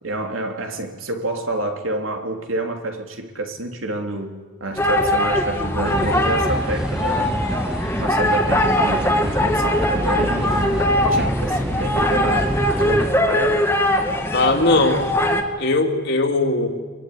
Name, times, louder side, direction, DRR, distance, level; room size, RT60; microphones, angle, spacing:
voice 1, 0.0-7.4 8.0-13.7, right 2 dB, 85° right, 4 dB, 3.3 m, -28 dB
sound 1, 4.8-15.4, left 1 dB, 10° left, 2.2 m, -21 dB
sound 2, 5.8-13.1, equal, 5° right, 0.8 m, -27 dB
voice 2, 14.3-15.0 15.6-16.7, left 2 dB, 55° left, 2 dB, 3.1 m, -19 dB
25.0 x 23.5 x 10.0 m, 1.4 s
head